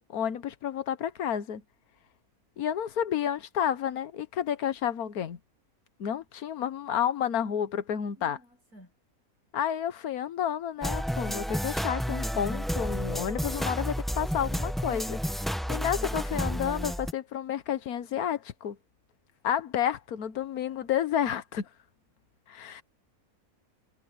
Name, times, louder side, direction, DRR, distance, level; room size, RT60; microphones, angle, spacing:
voice 1, 0.0-1.6 2.6-5.4 6.0-8.4 9.5-15.2 15.7-18.8 19.4-21.7 22.5-22.8, left 9 dB, 80° left, 1.5 m, -30 dB
voice 2, 8.1-8.9, equal, 85° right, 8.1 m, -54 dB
sound 1, 10.8-17.1, equal, ahead, 1.2 m, -31 dB
omnidirectional pair, 1.5 m